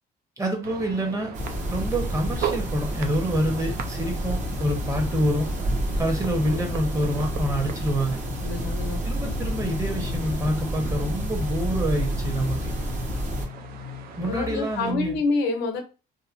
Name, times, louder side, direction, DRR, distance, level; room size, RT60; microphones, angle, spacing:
voice 1, 0.4-1.3 1.7-5.5 6.0-8.2 9.0-12.7 14.2-15.2, equal, 20° right, 2 dB, 0.9 m, -27 dB
sound 1, 0.6-14.9, right 8 dB, 60° right, 0.4 m, -40 dB
sound 2, 1.3-13.5, equal, 45° right, 0.9 m, -29 dB
voice 2, 8.4-9.1 14.2-15.8, left 3 dB, 85° left, 5 dB, 0.7 m, -27 dB
sound 3, 9.1-15.2, left 6 dB, 25° left, 0.5 m, -41 dB
2.8 x 2.1 x 2.5 m, 0.32 s
cardioid pair, 110°, 17 cm